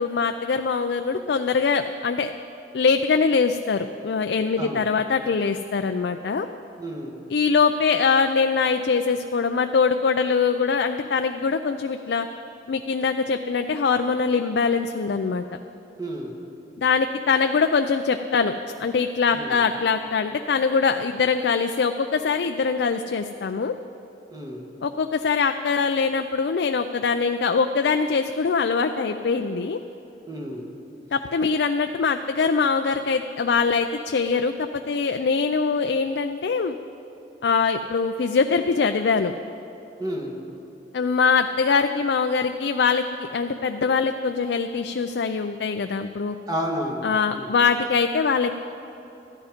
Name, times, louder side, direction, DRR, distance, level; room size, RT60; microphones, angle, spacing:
voice 1, 0.0-2.3 2.7-6.5 7.3-12.3 12.7-15.4 16.8-23.7 24.8-29.8 31.1-36.7 37.4-39.3 40.9-46.3 47.0-48.5, left 5 dB, 70° left, 7 dB, 0.4 m, -23 dB
voice 2, 4.6-4.9 6.8-7.1 16.0-16.3 19.3-19.6 24.3-24.7 30.3-30.6 40.0-40.4 46.5-47.5, equal, 20° right, 0 dB, 1.5 m, -31 dB
14.0 x 11.5 x 5.1 m, 3.0 s
head